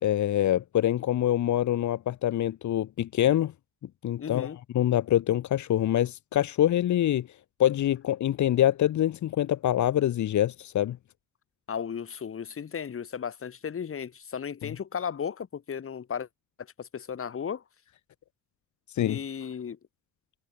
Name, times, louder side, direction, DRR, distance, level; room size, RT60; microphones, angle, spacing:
voice 1, 0.0-3.5 4.0-7.3 7.6-11.0 18.9-19.2, left 12 dB, 70° left, 2.6 m, -25 dB
voice 2, 4.2-4.6 11.7-16.3 16.6-17.6 19.0-19.8, left 7 dB, 45° left, 3.7 m, -35 dB
cardioid pair, 90°, 30 cm